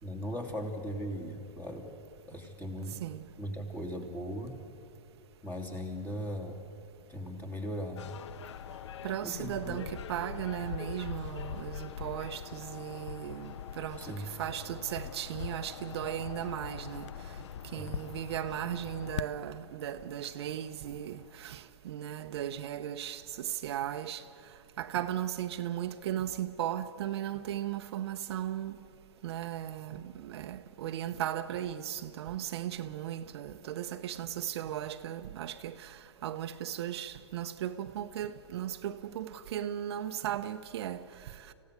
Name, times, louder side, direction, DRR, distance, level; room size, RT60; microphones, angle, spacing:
voice 1, 0.0-1.9 2.3-3.0 3.4-4.6 5.4-6.6 7.1-8.2 9.2-9.9 14.0-14.3 17.7-17.9, equal, 10° left, 2.9 m, -38 dB
sound 1, 8.0-21.5, left 9 dB, 75° left, 0.5 m, -43 dB
voice 2, 9.0-17.1 17.7-24.2 24.8-28.8 29.2-41.5, right 11 dB, 60° right, 0.8 m, -37 dB
26.0 x 16.0 x 6.8 m
hypercardioid pair, 130°, 15 cm